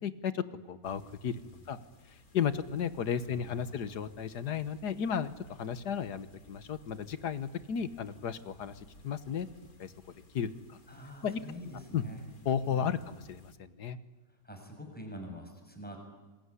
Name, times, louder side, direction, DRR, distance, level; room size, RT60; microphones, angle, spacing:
voice 1, 0.0-1.4 1.7-1.8 2.1-5.3 5.6-9.5 9.8-9.9 10.3-10.8 11.2-11.4 11.9-12.0 12.5-14.0, left 8 dB, 70° left, 13 dB, 1.8 m, -34 dB
sound 1, 0.8-13.5, left 2 dB, 55° left, 3.3 m, -58 dB
voice 2, 3.2-3.9 10.9-12.2 12.6-12.9 14.3-16.0, equal, 5° left, 3 dB, 6.3 m, -46 dB
27.0 x 21.5 x 9.8 m, 1.2 s
omnidirectional pair, 1.8 m